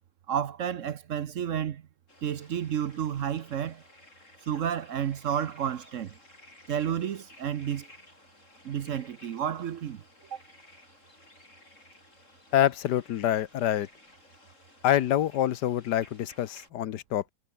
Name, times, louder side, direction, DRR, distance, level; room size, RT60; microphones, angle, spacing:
voice 1, 0.3-1.8 2.2-3.8 4.5-6.1 6.7-7.9 8.6-10.0 10.3-10.4, right 9 dB, 55° right, 1.0 m, -31 dB
sound 1, 2.1-16.7, left 1 dB, 45° left, 7.9 m, -56 dB
voice 2, 12.5-13.9 14.8-17.3, left 11 dB, 85° left, 1.5 m, -26 dB
omnidirectional pair, 1.7 m